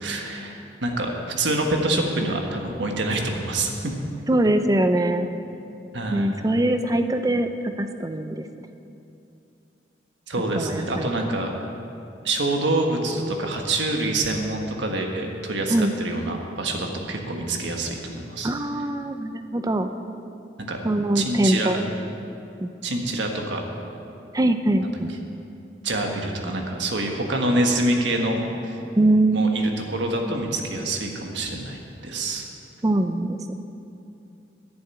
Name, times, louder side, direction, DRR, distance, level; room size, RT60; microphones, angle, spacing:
voice 1, 0.0-1.1 1.4-3.9 5.9-6.3 10.3-11.5 12.2-18.5 20.7-20.8 21.1-21.8 22.8-23.6 24.8-24.9 25.8-28.8 29.3-32.5, right 2 dB, 80° right, 2 dB, 1.4 m, -26 dB
voice 2, 4.3-5.3 6.1-8.5 10.5-11.1 15.7-15.9 18.4-19.9 20.8-21.8 22.6-22.7 24.3-25.1 29.0-29.4 32.8-33.4, right 1 dB, 20° right, 8 dB, 0.4 m, -22 dB
10.5 x 7.3 x 9.0 m, 2.7 s
head